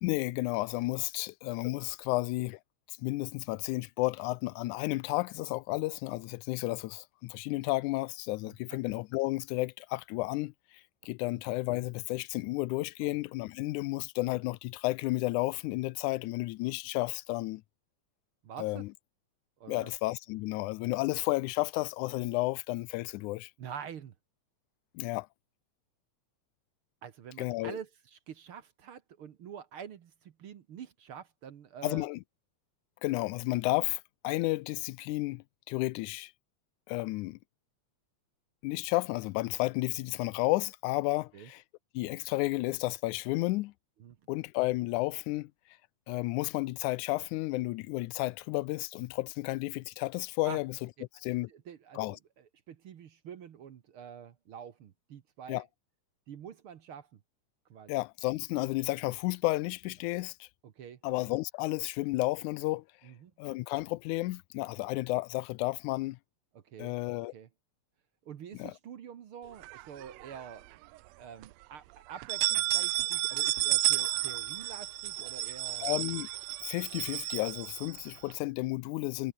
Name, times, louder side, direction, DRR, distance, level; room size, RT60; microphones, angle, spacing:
voice 1, 0.0-2.6 2.9-10.5 11.1-17.6 18.6-18.9 19.7-23.5 25.0-25.3 27.4-27.8 31.8-32.2 33.0-36.3 36.9-37.4 38.6-41.6 41.9-43.7 44.3-45.5 46.1-50.8 51.2-51.5 52.0-52.2 55.5-55.6 57.9-60.5 61.0-62.8 63.4-66.2 66.8-67.3 68.6-68.7 75.8-76.3 76.6-79.3, left 20 dB, 90° left, 2.1 m, -32 dB
voice 2, 8.4-8.8 11.3-11.4 13.0-13.2 18.4-18.8 19.6-19.9 23.6-24.1 27.0-32.1 41.3-41.5 44.0-44.2 50.4-50.6 51.5-55.6 56.3-57.2 57.7-57.9 60.6-61.0 63.0-63.3 66.5-66.9 67.3-67.5 68.3-70.7 71.2-75.9, right 8 dB, 55° right, 1.8 m, -46 dB
sound 1, 69.6-70.6 71.0-71.1 71.4-71.5 72.1-78.3, right 19 dB, 80° right, 1.6 m, -32 dB
omnidirectional pair, 3.4 m